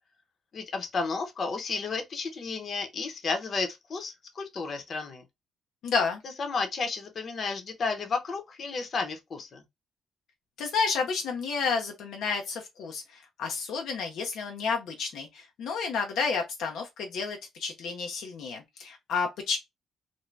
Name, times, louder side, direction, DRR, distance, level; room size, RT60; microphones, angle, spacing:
voice 1, 0.5-5.2 6.4-9.6, left 4 dB, 50° left, 0.8 m, -32 dB
voice 2, 5.8-6.2 10.6-13.0 13.4-19.6, left 5 dB, 80° left, 0.6 m, -30 dB
2.6 x 2.2 x 3.1 m
cardioid pair, 90°, 0 cm